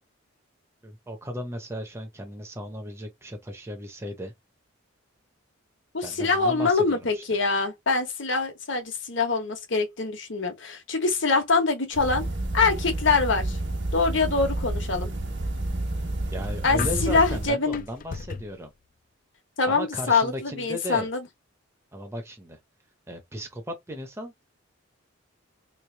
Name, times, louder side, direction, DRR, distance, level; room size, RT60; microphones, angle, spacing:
voice 1, 0.8-4.3 6.0-7.2 16.3-18.7 19.7-21.1 21.9-22.6 23.1-24.4, equal, 15° right, 0.7 m, -36 dB
voice 2, 5.9-12.2 12.5-13.6 13.9-15.1 16.6-17.8 19.6-21.2, left 4 dB, 65° left, 1.1 m, -24 dB
sound 1, 11.9-17.5, right 1 dB, 60° right, 1.2 m, -30 dB
sound 2, 15.7-18.6, left 4 dB, 45° left, 0.4 m, -36 dB
3.2 x 3.2 x 3.3 m
head